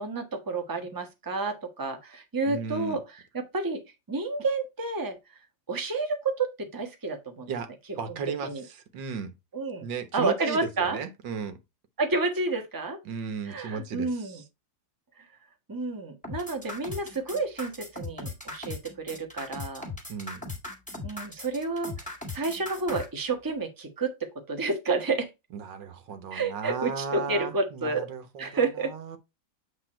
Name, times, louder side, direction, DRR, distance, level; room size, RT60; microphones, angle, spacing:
voice 1, 0.0-3.0 3.3-3.8 4.1-5.2 5.7-7.5 8.4-8.6 9.5-9.9 10.1-11.0 12.0-13.0 13.5-14.4 15.7-19.9 21.0-21.9 22.3-24.1 24.5-25.3 26.3-28.1 28.4-28.9, right 3 dB, 15° right, 1.2 m, -30 dB
voice 2, 2.5-3.0 7.5-7.7 8.0-9.3 9.8-11.6 13.1-14.4 20.1-20.4 25.5-29.2, right 6 dB, 80° right, 1.8 m, -35 dB
sound 1, 16.2-23.1, left 2 dB, 5° left, 2.1 m, -38 dB
8.3 x 3.6 x 4.4 m
omnidirectional pair, 1.9 m